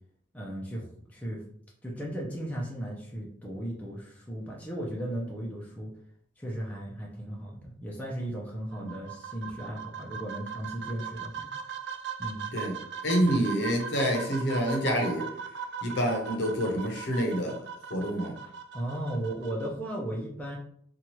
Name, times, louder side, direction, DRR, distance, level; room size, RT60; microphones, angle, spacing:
voice 1, 0.3-1.4 1.8-5.9 6.4-11.5 12.2-12.5 13.2-13.4 16.4-16.5 18.4-20.6, right 1 dB, 10° left, -4 dB, 0.5 m, -36 dB
sound 1, 8.7-19.7, right 7 dB, 60° right, 0.3 m, -39 dB
voice 2, 13.0-15.3 15.8-17.5 17.9-18.3, equal, 60° left, 1 dB, 0.7 m, -27 dB
2.8 x 2.4 x 2.9 m, 0.65 s
head